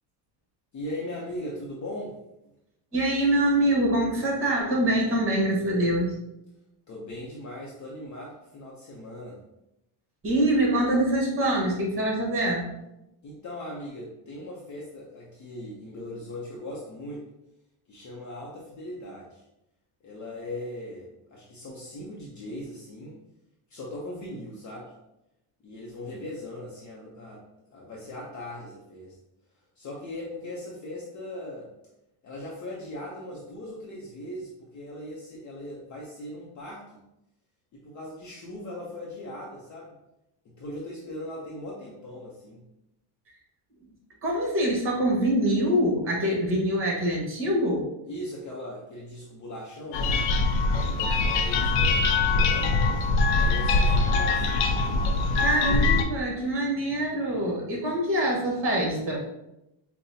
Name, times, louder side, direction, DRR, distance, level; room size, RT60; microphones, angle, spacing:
voice 1, 0.7-2.2 6.9-9.4 13.2-17.2 17.9-19.4 20.0-23.2 23.7-24.9 25.6-29.2 29.5-31.7 32.2-37.0 37.7-40.0 40.4-42.6 48.1-50.2 50.9-52.8 53.3-54.6 55.2-55.8 56.3-56.4, left 1 dB, 40° left, -4 dB, 0.7 m, -39 dB
voice 2, 2.9-6.2 10.2-12.7 44.2-47.9 55.4-59.2, right 1 dB, 25° right, -1 dB, 1.3 m, -24 dB
sound 1, 49.9-56.0, left 3 dB, 80° left, 0.6 m, -23 dB
5.4 x 2.2 x 2.7 m, 0.88 s
cardioid pair, 125°, 48 cm